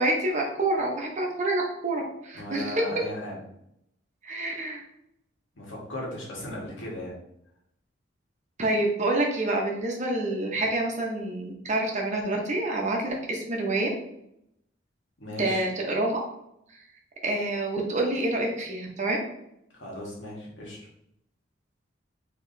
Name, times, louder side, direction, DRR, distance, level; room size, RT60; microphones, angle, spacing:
voice 1, 0.0-2.7 4.2-4.8 8.6-13.9 15.4-16.2 17.2-19.2, right 2 dB, 40° right, 0 dB, 0.8 m, -27 dB
voice 2, 2.3-3.4 5.5-7.1 15.2-15.7 19.7-20.8, left 1 dB, 75° left, -4 dB, 1.5 m, -36 dB
4.7 x 3.0 x 2.6 m, 0.78 s
head